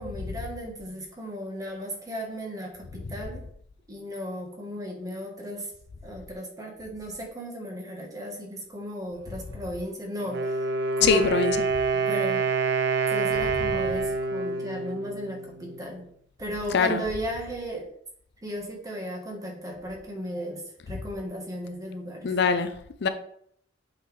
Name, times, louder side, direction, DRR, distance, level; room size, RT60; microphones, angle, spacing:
voice 1, 0.0-3.4 3.9-5.7 6.0-10.6 11.0-11.3 11.9-12.4 13.1-16.0 16.4-17.9 18.4-20.6 20.9-22.3, equal, 20° right, 1.2 m, -35 dB
Wind instrument woodwind instrument, 10.2-16.0, right 4 dB, 65° right, 0.8 m, -27 dB
voice 2, 11.0-11.7 13.6-13.7 16.7-17.0 22.2-22.7 23.0-23.1, left 5 dB, 60° left, 0.4 m, -23 dB
8.0 x 4.1 x 3.2 m
head